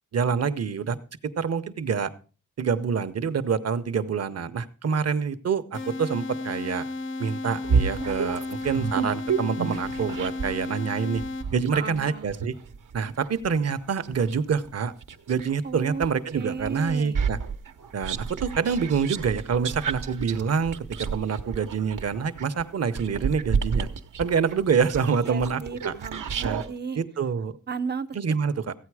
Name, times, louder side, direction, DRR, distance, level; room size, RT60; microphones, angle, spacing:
voice 1, 0.1-2.1 2.6-6.8 7.2-11.2 11.5-12.5 12.9-14.9 15.3-17.4 17.9-23.9 24.2-25.9 26.4-26.6 27.0-27.6 28.1-28.7, right 6 dB, 55° right, 0.9 m, -26 dB
sound 1, 5.7-11.8, left 2 dB, 40° left, 0.7 m, -34 dB
sound 2, 7.6-10.6 11.2-15.5 16.0-26.7, right 5 dB, 85° right, 1.1 m, -30 dB
voice 2, 11.7-12.3 15.6-16.1 16.3-17.2 25.1-27.0 27.7-28.1, right 5 dB, 35° right, 0.5 m, -34 dB
15.0 x 9.1 x 4.8 m
wide cardioid pair, 130°, 31 cm